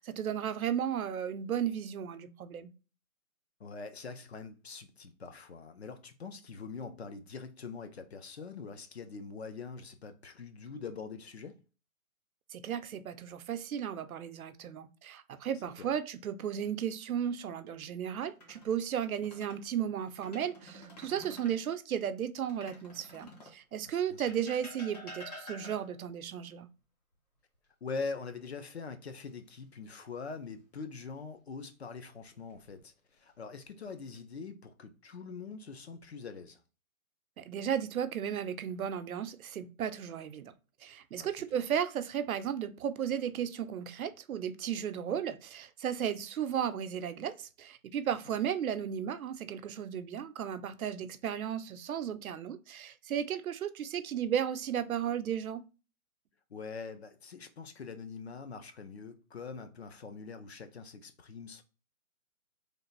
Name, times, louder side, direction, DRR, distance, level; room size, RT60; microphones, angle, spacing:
voice 1, 0.0-2.7 12.5-26.7 37.4-40.5 40.8-55.6, right 9 dB, 75° right, 0.6 m, -35 dB
voice 2, 3.6-11.6 15.8-15.9 23.9-24.3 27.8-32.9 33.2-36.6 41.2-41.5 56.5-61.6, left 4 dB, 50° left, 0.5 m, -43 dB
sound 1, 18.2-19.6 20.1-21.6 22.5-23.6 24.3-26.1 28.0-28.7 29.1-29.3 32.2-32.8 33.5-34.2, left 1 dB, 30° left, 0.9 m, -50 dB
3.3 x 2.4 x 3.9 m
hypercardioid pair, 160°, 43 cm